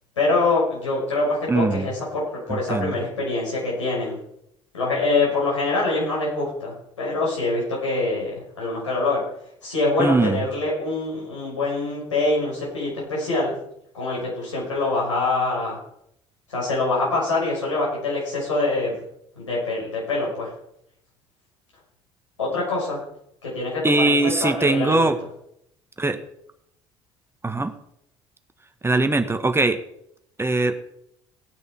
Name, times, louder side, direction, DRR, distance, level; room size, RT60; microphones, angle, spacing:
voice 1, 0.2-4.2 4.7-9.2 9.6-13.5 13.9-15.8 16.5-19.0 19.3-20.5 22.4-23.0 23.4-25.1, left 2 dB, 90° left, -5 dB, 6.2 m, -24 dB
voice 2, 1.5-1.9 2.5-2.9 10.0-10.4 23.8-25.2 26.0-26.2 27.4-27.7 28.8-29.8 30.4-30.8, right 2 dB, 15° right, 8 dB, 1.5 m, -21 dB
17.0 x 9.7 x 4.8 m, 0.75 s
hypercardioid pair, 55°, 15 cm